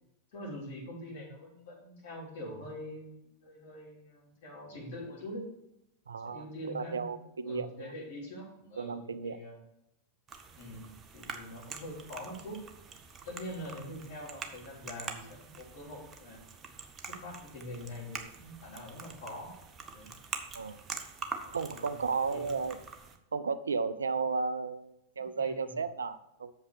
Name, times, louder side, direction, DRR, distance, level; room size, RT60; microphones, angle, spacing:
voice 1, 0.3-5.5 6.2-7.1 7.4-9.6 10.6-12.6 13.2-16.4 17.0-19.5 19.9-20.2 21.4-22.0 22.3-22.8 25.3-25.7, left 1 dB, 55° left, -4 dB, 3.5 m, -44 dB
voice 2, 6.1-7.9 8.8-9.4 20.5-20.8 21.5-22.8 23.3-26.5, right 5 dB, 70° right, 13 dB, 0.4 m, -34 dB
sound 1, 10.3-23.2, right 5 dB, 25° right, 0.8 m, -45 dB
6.8 x 5.4 x 6.7 m, 0.86 s
figure-of-eight pair, 90°, 0 cm